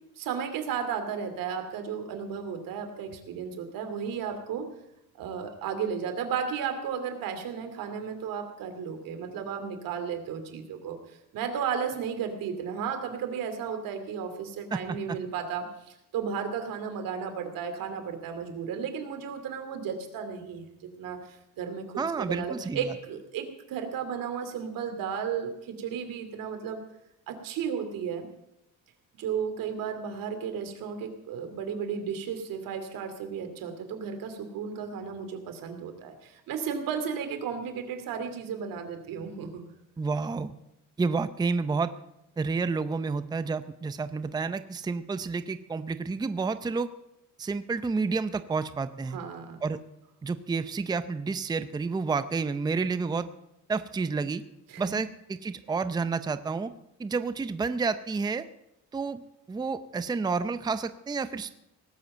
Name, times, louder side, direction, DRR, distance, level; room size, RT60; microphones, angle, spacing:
voice 1, 0.2-4.6 5.1-11.0 11.3-21.8 22.2-26.8 27.3-28.3 29.2-39.6 49.1-49.6 54.7-54.8, right 7 dB, 85° right, 6 dB, 2.6 m, -34 dB
voice 2, 14.7-15.2 22.0-22.9 40.0-40.5 41.0-41.9 42.4-46.9 47.4-49.2 49.6-49.8 50.2-53.3 53.7-54.4 54.8-56.7 57.0-58.5 58.9-59.2 59.5-61.5, right 4 dB, 10° right, 12 dB, 0.5 m, -30 dB
18.5 x 7.7 x 7.9 m, 0.83 s
cardioid pair, 135°, 33 cm